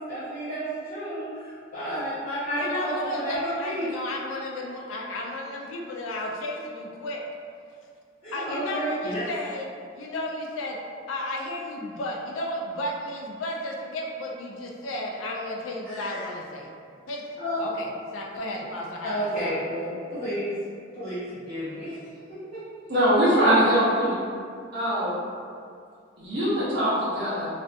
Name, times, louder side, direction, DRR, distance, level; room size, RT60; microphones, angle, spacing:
voice 1, 0.0-3.9 8.2-9.3 15.8-16.3 17.4-17.6 19.0-20.6 20.9-22.0, equal, 35° left, -15 dB, 0.7 m, -31 dB
voice 2, 2.6-7.2 8.3-9.7 9.9-10.8 11.1-16.7 17.1-17.3 17.6-19.6, left 1 dB, 90° left, -1 dB, 0.4 m, -33 dB
voice 3, 22.9-24.1 24.7-25.1 26.2-27.5, equal, 55° right, -11 dB, 0.8 m, -22 dB
2.5 x 2.4 x 2.3 m, 2.3 s
head